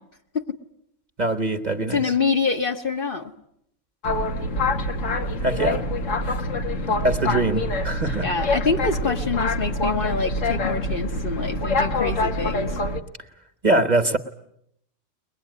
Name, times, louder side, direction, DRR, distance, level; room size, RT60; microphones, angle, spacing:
voice 1, 1.2-2.1 5.4-5.8 6.9-8.3 13.6-14.2, right 2 dB, 35° right, 9 dB, 1.2 m, -23 dB
voice 2, 1.8-3.3 8.2-12.7, left 5 dB, 45° left, 3 dB, 1.5 m, -26 dB
Boat Water vehicle, 4.0-13.0, left 1 dB, 75° left, 1.7 m, -25 dB
22.5 x 21.0 x 9.6 m, 0.75 s
omnidirectional pair, 1.3 m